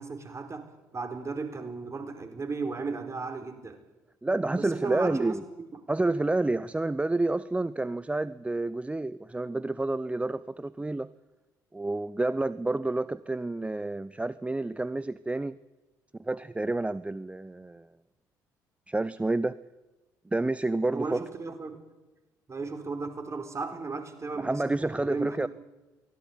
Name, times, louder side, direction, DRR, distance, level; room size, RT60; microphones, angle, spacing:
voice 1, 0.0-3.8 4.5-5.7 20.9-21.8 22.5-25.4, right 4 dB, 30° right, 4.6 m, -35 dB
voice 2, 4.2-5.4 5.9-11.1 11.7-15.6 16.2-17.9 18.9-19.6 20.3-21.2 24.4-25.5, right 2 dB, 15° right, 0.8 m, -29 dB
24.0 x 17.0 x 9.4 m
figure-of-eight pair, 50°, 10 cm